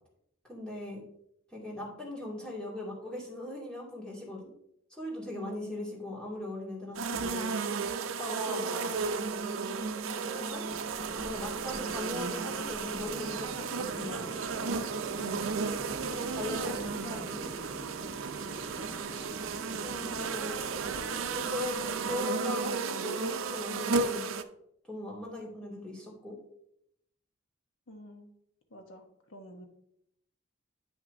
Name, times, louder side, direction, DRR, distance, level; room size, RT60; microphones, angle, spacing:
voice 1, 0.5-1.0 1.5-4.5 4.9-7.5 8.2-8.9 10.2-10.6 11.2-14.3 16.0-17.4 19.8-20.7 21.3-21.8 22.0-24.3 24.8-26.4, left 1 dB, 5° left, -5 dB, 2.2 m, -39 dB
voice 2, 5.3-5.9 7.1-7.7 15.2-15.6 19.1-19.3 27.9-28.3 28.7-29.7, equal, 80° left, 4 dB, 1.1 m, -49 dB
sound 1, 7.0-24.4, right 5 dB, 85° right, 0.5 m, -34 dB
sound 2, 9.1-22.2, right 2 dB, 25° right, 0.5 m, -48 dB
sound 3, 10.7-22.2, right 1 dB, 55° right, 0.9 m, -44 dB
10.0 x 6.0 x 2.7 m, 0.75 s
head